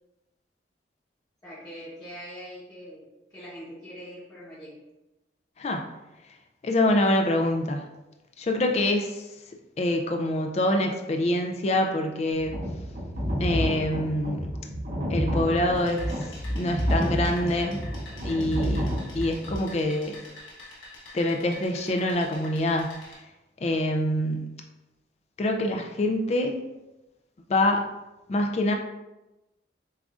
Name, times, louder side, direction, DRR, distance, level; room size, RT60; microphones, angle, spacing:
voice 1, 1.4-4.8, equal, 20° left, -10 dB, 0.9 m, -43 dB
voice 2, 6.6-7.9 8.4-9.3 9.8-12.7 13.4-14.5 15.1-17.8 18.2-18.9 19.1-20.2 21.1-23.2 23.6-24.5 25.4-26.7 27.5-27.8 28.3-28.7, left 1 dB, 35° left, 3 dB, 0.3 m, -25 dB
sound 1, 12.3-19.5, equal, 50° right, 0.8 m, -29 dB
sound 2, 15.8-23.1, left 2 dB, 85° left, 1.1 m, -47 dB
7.1 x 2.5 x 2.4 m, 1.0 s
head